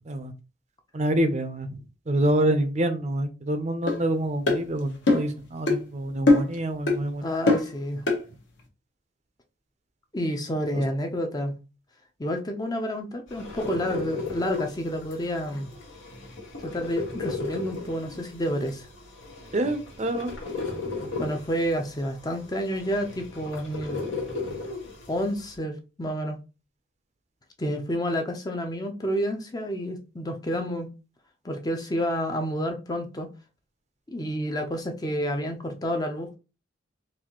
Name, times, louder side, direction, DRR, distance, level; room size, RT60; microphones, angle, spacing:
voice 1, 0.9-7.3 10.7-10.8 19.5-20.3, right 1 dB, 35° right, 0.5 m, -27 dB
sound 1, 3.9-4.0 4.5-4.6 5.1-5.3 5.7-5.8 6.3-6.6 6.9-7.0 7.5-7.7 8.1-8.2, left 2 dB, 65° left, 1.0 m, -20 dB
voice 2, 7.2-8.0 10.1-11.6 12.2-15.7 16.6-18.9 21.1-24.0 25.1-26.4 27.6-30.9 31.4-33.3 34.1-36.4, equal, 20° left, 0.5 m, -29 dB
sound 2, 13.3-25.6, left 3 dB, 85° left, 1.4 m, -36 dB
4.0 x 2.6 x 2.9 m
head